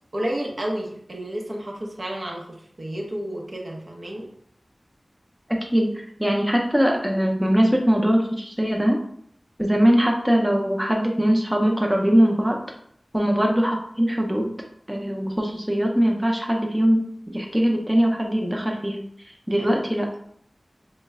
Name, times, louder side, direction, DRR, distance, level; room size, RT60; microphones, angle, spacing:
voice 1, 0.1-4.3 13.2-13.4 19.6-19.9, right 1 dB, 70° right, -1 dB, 0.6 m, -31 dB
voice 2, 5.5-9.0 9.6-12.6 13.1-14.5 14.9-20.1, equal, 10° right, 0 dB, 0.5 m, -21 dB
3.1 x 2.1 x 3.5 m, 0.66 s
wide cardioid pair, 60°, 0 cm